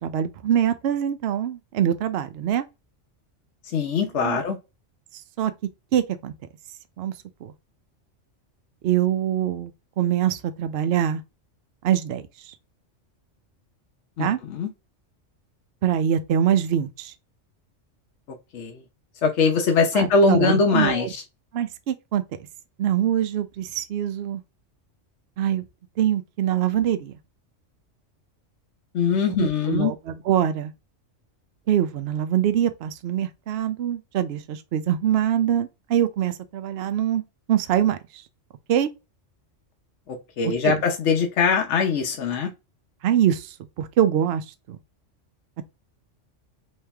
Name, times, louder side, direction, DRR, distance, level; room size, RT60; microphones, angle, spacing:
voice 1, 0.0-2.7 4.2-4.4 5.4-5.5 5.9-6.3 7.0-7.1 7.4-7.5 8.8-9.7 10.0-11.2 11.8-12.5 14.2-14.4 15.8-17.1 19.9-21.1 21.5-22.2 22.8-24.4 25.4-25.6 26.0-27.1 29.4-30.7 31.7-37.2 37.5-38.0 38.7-38.9 40.6-40.7 43.0-44.8, right 10 dB, 65° right, 0.7 m, -24 dB
voice 2, 3.6-4.6 14.2-14.7 18.5-18.8 19.2-21.2 28.9-29.9 40.1-42.5, left 5 dB, 70° left, 1.1 m, -22 dB
3.3 x 3.1 x 3.3 m
omnidirectional pair, 1.3 m